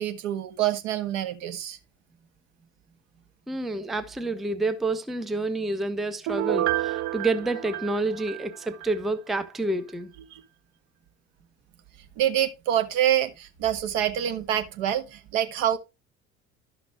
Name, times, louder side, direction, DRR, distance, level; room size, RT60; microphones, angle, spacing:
voice 1, 0.0-1.8 10.3-10.4 12.2-15.8, right 11 dB, 60° right, 1.5 m, -26 dB
voice 2, 3.5-10.1, right 2 dB, ahead, 0.6 m, -28 dB
Piano, 6.3-9.0 9.3-9.4, right 15 dB, 40° right, 0.7 m, -29 dB
12.0 x 5.9 x 3.4 m
figure-of-eight pair, 60°, 44 cm